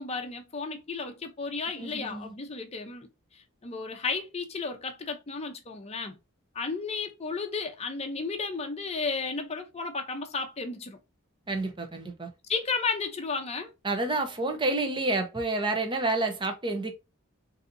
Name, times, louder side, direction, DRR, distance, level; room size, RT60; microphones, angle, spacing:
voice 1, 0.0-3.1 3.6-6.2 6.5-11.0 12.5-13.7, left 4 dB, 30° left, 0.6 m, -33 dB
voice 2, 1.8-2.3 11.5-12.3 13.8-16.9, right 2 dB, 20° right, 0.6 m, -29 dB
3.9 x 2.7 x 2.6 m
head